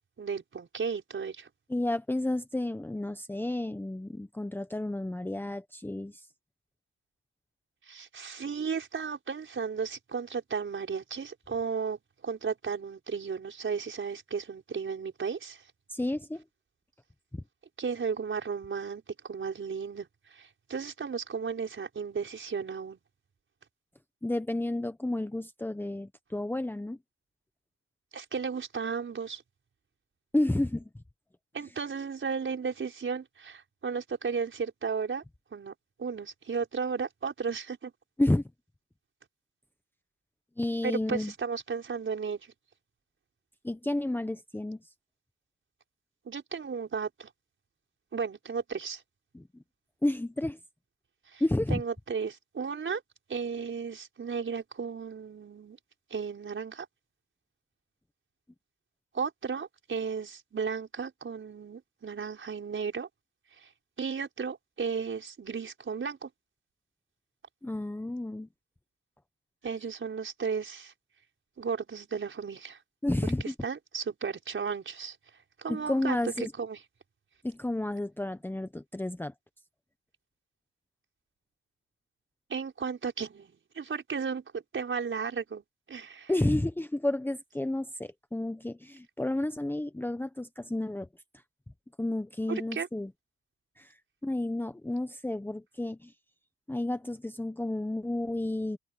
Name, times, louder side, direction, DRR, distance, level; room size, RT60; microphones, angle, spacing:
voice 1, 0.2-1.5 7.9-15.6 17.8-23.0 28.1-29.4 31.5-35.2 35.5-35.7 36.0-37.9 40.8-42.5 46.3-47.3 48.1-49.0 51.3-51.4 51.7-53.0 53.3-55.8 56.1-56.9 59.1-63.1 63.6-63.7 64.0-66.3 69.6-70.9 71.6-72.8 73.4-75.2 75.6-76.8 82.5-85.6 85.9-86.3 92.5-92.9, right 5 dB, 40° right, 5.6 m, -34 dB
voice 2, 1.7-6.3 15.9-16.4 24.2-27.0 30.3-30.9 38.2-38.4 40.6-41.3 43.6-44.8 49.3-49.4 50.0-50.6 51.4-51.8 67.6-68.5 73.0-73.5 75.7-76.5 77.4-79.3 86.3-91.1 92.0-93.1 93.8-93.9 94.2-96.1 96.7-98.8, left 1 dB, 5° left, 1.1 m, -31 dB
cardioid pair, 90°, 30 cm